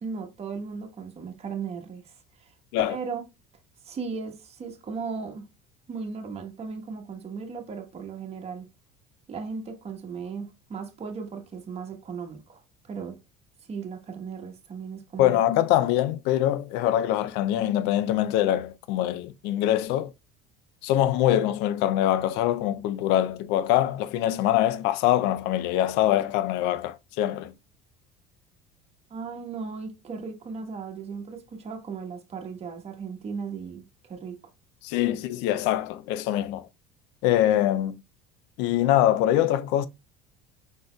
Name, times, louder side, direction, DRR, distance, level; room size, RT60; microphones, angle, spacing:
voice 1, 0.0-2.5 2.9-3.2 3.8-5.5 5.9-8.7 9.3-12.6 12.9-13.2 13.7-15.4 29.1-34.4 35.1-35.2, right 5 dB, 35° right, 1.2 m, -36 dB
voice 2, 15.2-20.1 20.8-27.5 34.8-36.7 37.2-38.0 38.6-39.9, left 12 dB, 70° left, 0.5 m, -24 dB
5.3 x 3.9 x 2.2 m
supercardioid pair, 95°, 19 cm